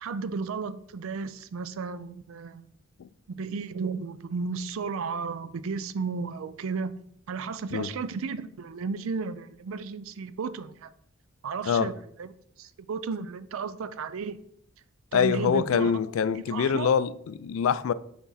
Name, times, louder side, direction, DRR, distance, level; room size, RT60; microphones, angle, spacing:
voice 1, 0.0-2.6 3.3-6.9 7.3-10.9 11.4-11.9 12.2-12.3 12.6-14.4 15.1-15.9 16.4-17.0, right 5 dB, 70° right, 0.4 m, -33 dB
voice 2, 15.1-17.9, left 7 dB, 70° left, 0.3 m, -25 dB
5.9 x 4.3 x 4.1 m
head